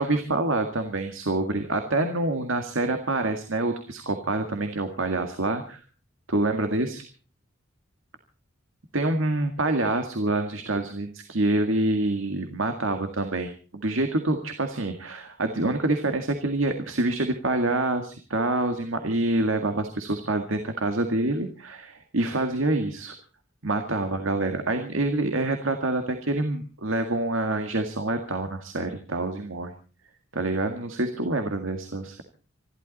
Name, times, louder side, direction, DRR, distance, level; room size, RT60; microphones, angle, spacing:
voice 1, 0.0-5.8 6.3-7.0 8.9-23.1 23.6-29.7 30.3-32.2, right 2 dB, 85° right, 6 dB, 1.9 m, -26 dB
27.0 x 12.0 x 4.1 m, 0.37 s
head